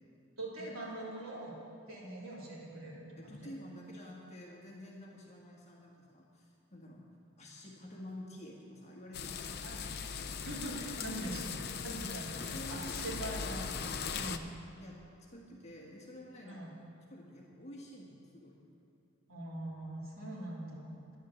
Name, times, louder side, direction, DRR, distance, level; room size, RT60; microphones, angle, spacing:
voice 1, 0.4-1.6 1.9-3.5 9.6-10.0 10.4-11.5 11.8-14.5 16.4-16.8 19.3-21.1, right 1 dB, 75° right, -6 dB, 3.7 m, -43 dB
voice 2, 3.2-7.1 7.4-9.8 11.0-11.5 12.0-13.6 14.8-15.0 15.3-16.7 17.1-18.6, equal, 30° left, -2 dB, 1.6 m, -49 dB
sound 1, 9.1-14.4, left 6 dB, 50° left, 0.6 m, -39 dB
11.0 x 11.0 x 7.1 m, 2.6 s
head